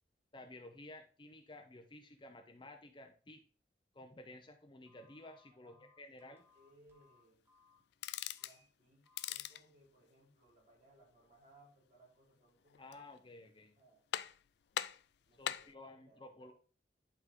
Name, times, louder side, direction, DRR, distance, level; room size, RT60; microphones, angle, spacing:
voice 1, 0.3-3.4 3.9-6.4 12.8-13.7 15.4-16.5, left 2 dB, 25° left, 5 dB, 0.6 m, -54 dB
Telephone, 4.8-7.8 8.3-8.6 9.0-9.4, left 3 dB, 15° right, 1.7 m, -69 dB
voice 2, 5.5-7.4 8.4-12.8 13.8-14.0 15.2-16.5, right 1 dB, 40° right, -3 dB, 3.0 m, -67 dB
sound 1, 7.9-8.6 9.1-9.7 12.7-13.2 13.6-13.7 14.1-14.5 14.7-15.7, left 10 dB, 65° left, 0.3 m, -41 dB
11.0 x 3.7 x 3.7 m, 0.40 s
head